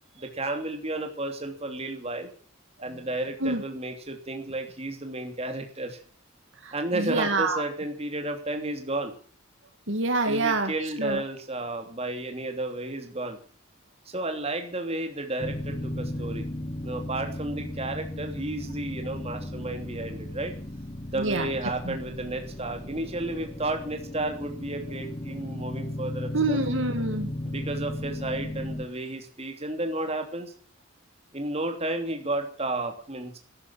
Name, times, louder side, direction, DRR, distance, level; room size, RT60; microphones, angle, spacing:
voice 1, 0.1-2.3 2.8-6.0 6.7-9.1 10.3-13.4 14.1-16.5 16.8-20.5 21.1-26.6 27.4-30.5 31.3-33.4, right 2 dB, 30° right, 4 dB, 3.0 m, -32 dB
voice 2, 6.6-7.6 9.9-10.7 11.0-11.2 21.2-21.5 21.8-22.0 26.3-27.3, right 2 dB, 65° right, 6 dB, 2.2 m, -26 dB
sound 1, 15.4-28.9, left 1 dB, 25° left, 1.7 m, -35 dB
13.5 x 11.0 x 8.7 m, 0.44 s
head